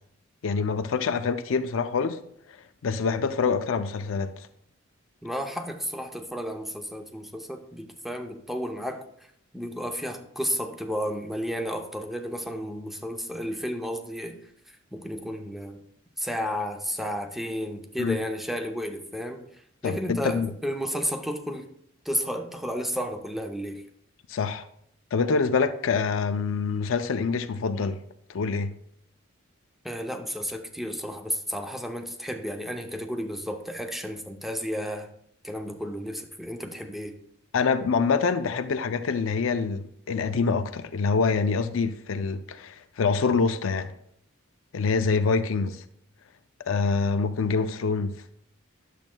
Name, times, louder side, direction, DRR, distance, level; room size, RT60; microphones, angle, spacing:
voice 1, 0.4-2.2 2.8-4.5 18.0-18.2 19.8-20.5 24.3-24.7 25.1-28.0 28.3-28.7 37.5-43.9 44.7-45.8 46.6-48.1, left 5 dB, 70° left, 9 dB, 0.4 m, -25 dB
voice 2, 5.2-9.0 9.5-14.4 14.9-15.8 16.2-19.5 19.8-21.7 22.1-23.8 29.8-35.1 35.4-37.2, equal, ahead, 5 dB, 0.6 m, -32 dB
10.5 x 7.2 x 2.2 m, 0.68 s
head